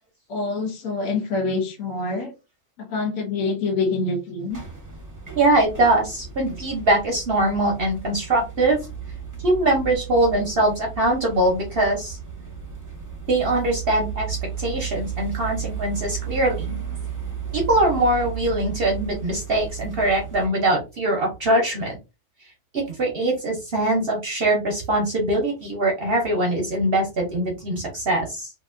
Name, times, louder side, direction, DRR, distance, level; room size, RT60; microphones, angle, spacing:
voice 1, 0.3-2.3 2.8-4.6, left 3 dB, 80° left, 2 dB, 1.3 m, -26 dB
sound 1, 4.5-20.5, right 7 dB, 15° right, 0.6 m, -34 dB
voice 2, 5.4-8.8 9.4-12.2 13.3-16.8 17.5-22.0 22.7-28.5, right 1 dB, 55° right, 0 dB, 0.8 m, -22 dB
2.8 x 2.6 x 2.4 m, 0.28 s
omnidirectional pair, 1.5 m